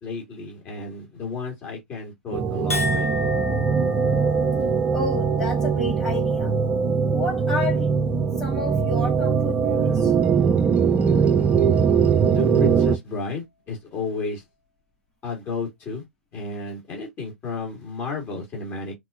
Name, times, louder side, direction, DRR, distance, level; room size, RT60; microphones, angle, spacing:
voice 1, 0.0-3.1 12.3-14.4 15.2-16.0 16.3-18.9, left 4 dB, 25° left, 2.5 m, -32 dB
sound 1, 2.3-13.0, right 6 dB, 15° right, 0.4 m, -21 dB
Chink clink, 2.7-9.3 9.6-10.2, left 1 dB, 85° left, 1.3 m, -35 dB
voice 2, 4.9-6.5 7.0-7.9 8.4-10.1, left 2 dB, 5° left, 2.7 m, -31 dB
5.8 x 2.5 x 2.6 m
figure-of-eight pair, 105°, 8 cm